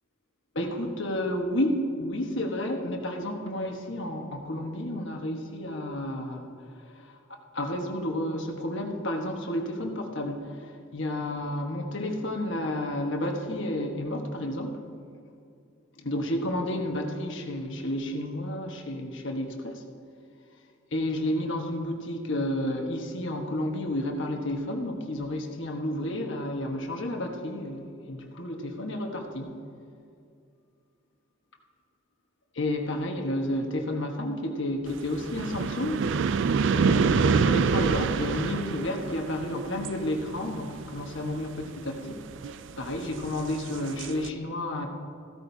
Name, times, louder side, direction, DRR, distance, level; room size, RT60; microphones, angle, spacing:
voice 1, 0.5-6.5 6.9-7.2 7.5-14.8 16.0-19.8 20.9-29.6 32.5-36.0 36.4-42.2 42.8-44.9, left 1 dB, 60° left, 2 dB, 1.3 m, -31 dB
sound 1, 34.9-44.3, right 5 dB, 60° right, 0.3 m, -27 dB
15.0 x 13.0 x 2.8 m, 2.4 s
head